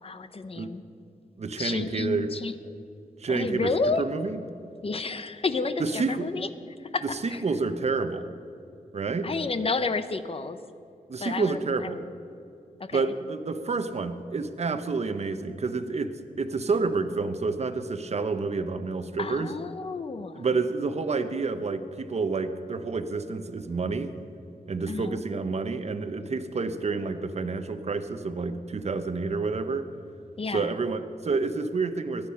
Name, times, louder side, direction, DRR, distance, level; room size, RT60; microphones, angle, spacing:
voice 1, 0.0-0.8 1.6-2.7 3.3-4.0 4.8-6.5 6.9-7.4 9.2-10.6 11.2-12.0 12.8-13.1 19.2-20.5 24.9-25.2 30.4-30.7, left 3 dB, 40° left, 11 dB, 0.8 m, -31 dB
voice 2, 1.4-2.3 3.2-3.7 4.0-4.4 5.8-6.3 7.2-8.3 8.9-9.3 11.1-12.0 12.9-19.5 20.3-24.1 24.7-29.9 30.5-32.3, right 4 dB, 45° right, 9 dB, 0.9 m, -29 dB
23.0 x 10.5 x 5.7 m, 2.6 s
wide cardioid pair, 160°, 15 cm